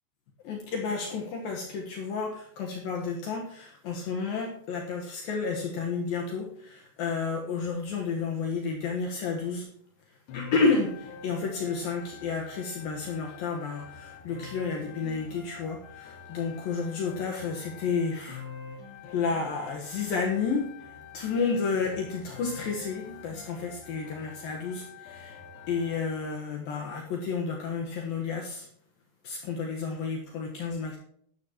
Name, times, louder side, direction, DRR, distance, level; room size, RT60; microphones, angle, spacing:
voice 1, 0.4-9.7 10.3-18.4 19.1-25.4 25.7-28.7 29.2-31.0, left 5 dB, 65° left, 0 dB, 2.9 m, -31 dB
sound 1, 10.3-26.3, left 6 dB, 85° left, 4.0 m, -46 dB
14.5 x 12.5 x 3.0 m, 0.65 s
omnidirectional pair, 4.7 m